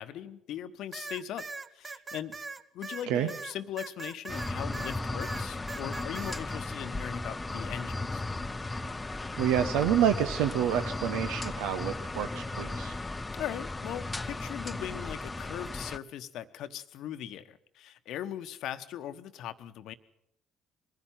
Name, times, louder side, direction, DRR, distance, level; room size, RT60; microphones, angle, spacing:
voice 1, 0.0-1.5 1.7-2.4 2.7-8.2 13.3-19.9, left 10 dB, 60° left, 13 dB, 1.1 m, -39 dB
sound 1, 0.9-5.0 5.2-6.4, right 3 dB, 25° right, 1.3 m, -41 dB
sound 2, 4.3-16.0, left 2 dB, 20° left, 0.9 m, -36 dB
voice 2, 9.4-13.0, right 10 dB, 65° right, 8 dB, 1.0 m, -28 dB
23.0 x 15.5 x 9.2 m, 0.80 s
figure-of-eight pair, 50°, 0 cm